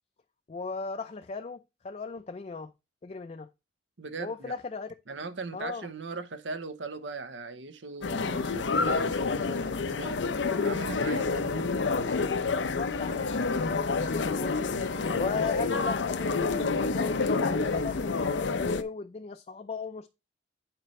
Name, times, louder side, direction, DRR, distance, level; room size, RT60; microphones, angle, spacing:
voice 1, 0.5-2.7 3.0-3.5 4.2-4.9 5.5-5.9 12.5-14.6 14.9-20.1, left 4 dB, 35° left, 0.4 m, -37 dB
voice 2, 4.0-4.5 5.1-10.2 10.6-11.7 14.9-15.3, right 3 dB, 85° right, 0.9 m, -39 dB
sound 1, 8.0-18.8, left 4 dB, 85° left, 0.7 m, -28 dB
9.0 x 4.5 x 3.1 m
head